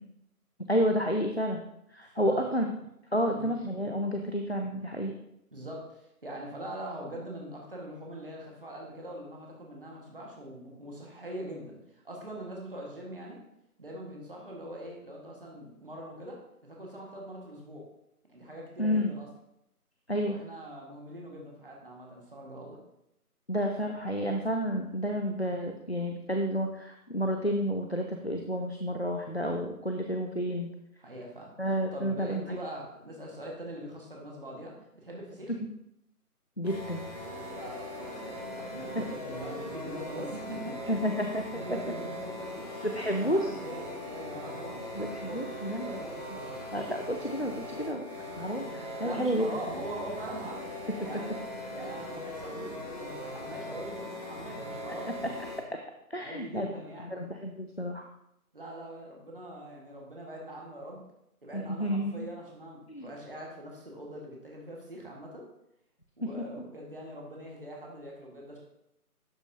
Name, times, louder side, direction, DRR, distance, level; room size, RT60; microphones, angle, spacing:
voice 1, 0.7-1.6 1.9-2.7 3.1-5.1 18.8-19.1 20.1-20.4 23.5-30.7 31.6-32.6 36.6-37.1 39.0-39.1 40.9-41.5 42.8-43.5 44.9-46.0 46.7-48.1 48.3-49.5 55.2-55.3 56.1-56.7 57.1-58.1 61.5-62.3 62.9-63.1 66.2-66.3, equal, 45° left, 4 dB, 0.5 m, -30 dB
voice 2, 2.0-2.5 3.2-3.5 5.5-13.4 13.8-17.8 18.3-19.3 20.3-22.8 31.0-31.5 31.9-35.5 37.5-41.1 41.5-46.6 49.0-51.3 51.7-55.2 56.1-57.1 58.5-61.0 61.4-65.4 66.2-68.6, right 1 dB, 35° right, -2 dB, 1.6 m, -42 dB
sound 1, 36.6-55.6, left 1 dB, 25° left, 1.7 m, -40 dB
12.0 x 6.1 x 2.7 m, 0.80 s
figure-of-eight pair, 175°, 46 cm